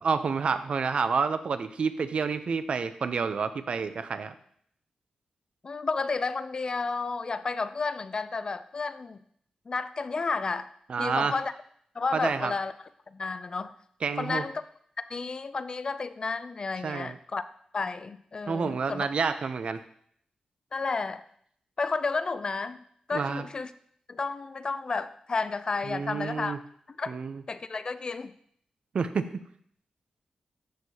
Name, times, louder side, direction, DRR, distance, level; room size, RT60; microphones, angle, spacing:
voice 1, 0.0-4.3 10.9-11.4 12.1-12.5 14.0-14.4 16.8-17.2 18.5-19.8 23.1-23.4 25.9-26.6 27.1-27.4 28.9-29.3, right 5 dB, 55° right, 11 dB, 0.5 m, -29 dB
voice 2, 5.6-9.2 9.7-10.7 11.0-11.5 12.0-12.7 13.1-13.7 14.2-14.6 15.0-17.4 17.7-19.1 20.7-21.2 21.8-22.8 23.1-23.7 24.1-26.6 26.9-27.2 27.5-28.3, left 4 dB, 40° left, 13 dB, 0.3 m, -31 dB
12.5 x 4.5 x 2.8 m, 0.65 s
wide cardioid pair, 135°, 2 cm